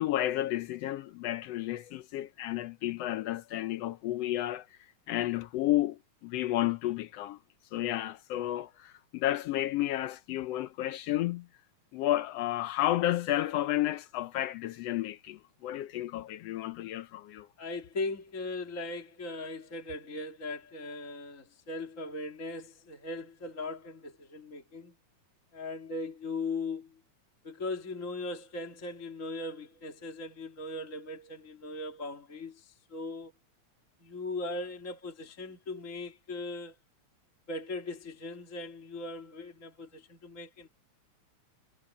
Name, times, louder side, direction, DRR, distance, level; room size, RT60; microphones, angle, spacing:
voice 1, 0.0-4.7 5.1-7.4 7.7-11.5 11.9-17.5, left 14 dB, 75° left, 1.5 m, -32 dB
voice 2, 17.6-24.9 25.5-27.0 27.4-33.3 34.0-36.8 37.5-40.7, left 2 dB, 25° left, 2.4 m, -39 dB
omnidirectional pair, 3.4 m